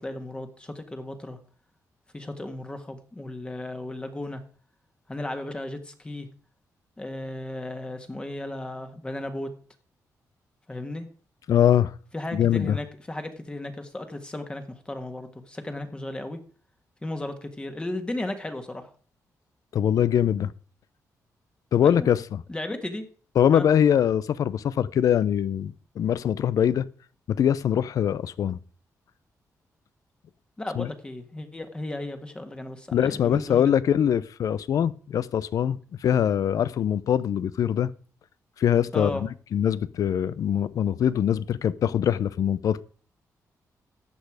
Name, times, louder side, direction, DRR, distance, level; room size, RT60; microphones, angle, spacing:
voice 1, 0.0-1.4 2.1-4.4 5.1-6.3 7.0-9.5 10.7-11.1 12.1-16.4 17.0-18.9 21.8-22.1 22.5-23.1 23.5-23.7 30.6-33.7 38.9-39.2, left 1 dB, 15° left, 1.6 m, -35 dB
voice 2, 11.5-11.9 12.3-12.8 19.7-20.5 21.7-22.4 23.4-26.9 27.3-28.6 30.8-30.9 32.9-37.9 38.6-42.8, left 9 dB, 70° left, 0.6 m, -23 dB
13.0 x 8.3 x 4.9 m
wide cardioid pair, 135°, 6 cm